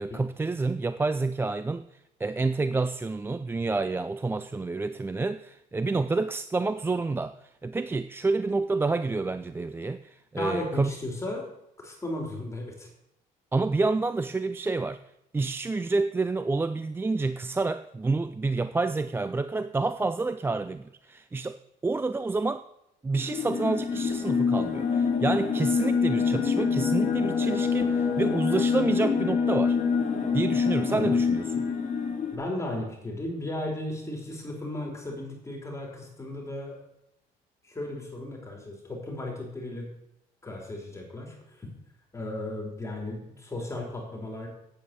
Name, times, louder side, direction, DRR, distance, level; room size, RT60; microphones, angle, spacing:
voice 1, 0.0-1.8 2.2-10.9 13.5-15.0 15.3-22.6 23.0-29.8 30.3-31.7, right 3 dB, 15° right, 12 dB, 0.4 m, -28 dB
voice 2, 10.4-11.5 11.8-12.9 30.9-31.2 32.3-36.8 37.6-39.9 40.4-41.7 42.1-44.5, left 1 dB, 15° left, 0 dB, 3.5 m, -35 dB
sound 1, 23.2-32.4, left 6 dB, 45° left, 2.2 m, -26 dB
9.2 x 8.6 x 6.7 m, 0.83 s
cardioid pair, 110°, 17 cm